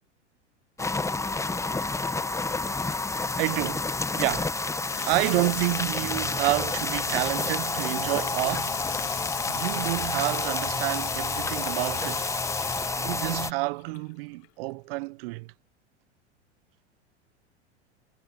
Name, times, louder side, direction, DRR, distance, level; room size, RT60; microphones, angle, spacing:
sound 1, 0.8-13.5, left 3 dB, 10° left, 1.3 m, -29 dB
voice 1, 3.4-4.6 5.1-8.8 9.5-12.3 13.0-15.5, right 25 dB, 55° right, 1.0 m, -29 dB
Water tap faucet / Sink (filling or washing), 4.4-14.1 14.4-14.5, left 28 dB, 40° left, 0.8 m, -40 dB
figure-of-eight pair, 90°, 35 cm